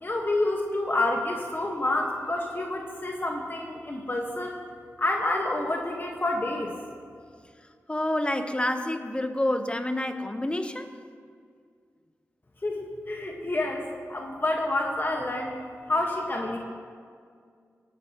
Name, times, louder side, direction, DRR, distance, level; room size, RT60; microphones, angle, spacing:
voice 1, 0.0-4.6 5.0-6.7 12.6-13.8 14.1-15.6 15.9-16.6, left 2 dB, 40° left, 0 dB, 1.5 m, -28 dB
voice 2, 7.9-10.9, left 1 dB, 20° left, 7 dB, 1.1 m, -28 dB
20.0 x 12.5 x 3.0 m, 2.1 s
cardioid pair, 50°, 6 cm